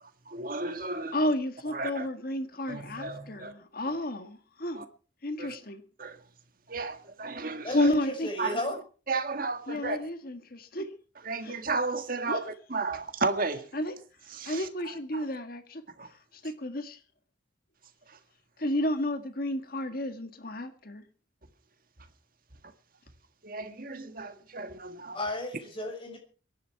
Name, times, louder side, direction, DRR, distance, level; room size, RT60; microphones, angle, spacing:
voice 1, 0.3-1.2 1.7-2.1 2.7-3.5 3.9-4.0 4.7-4.8 5.4-5.6 6.0-6.2 6.7-7.9 8.4-8.6 9.1-10.0 11.2-13.7 14.3-14.7 15.1-15.3 16.0-16.1 23.4-25.2, right 3 dB, 45° right, 1.8 m, -33 dB
voice 2, 1.1-4.3 4.6-4.8 5.2-5.8 7.7-8.3 9.7-10.9 11.4-11.6 12.3-12.4 13.7-14.0 14.4-15.8 16.4-17.0 18.6-21.0, left 1 dB, 50° left, 1.8 m, -31 dB
voice 3, 7.6-8.8 25.1-26.2, left 1 dB, 25° left, 6.3 m, -33 dB
23.0 x 11.5 x 4.6 m
head